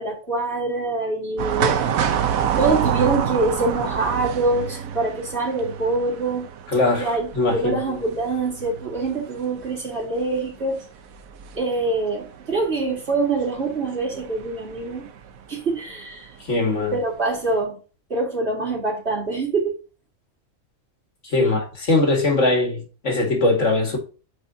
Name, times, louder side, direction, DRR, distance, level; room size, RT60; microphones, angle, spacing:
voice 1, 0.0-1.8 2.6-6.4 7.0-7.3 7.5-10.8 11.6-15.1 15.5-16.3 16.9-17.8 18.1-19.7 21.4-21.6, right 3 dB, 50° right, 3.5 m, -24 dB
sound 1, 1.4-15.4 15.7-15.8 16.8-17.1 17.5-17.6, right 8 dB, 80° right, 1.2 m, -28 dB
voice 2, 6.7-7.8 16.4-17.0 21.2-24.0, left 2 dB, 60° left, 2.1 m, -21 dB
8.8 x 4.9 x 2.7 m
omnidirectional pair, 1.4 m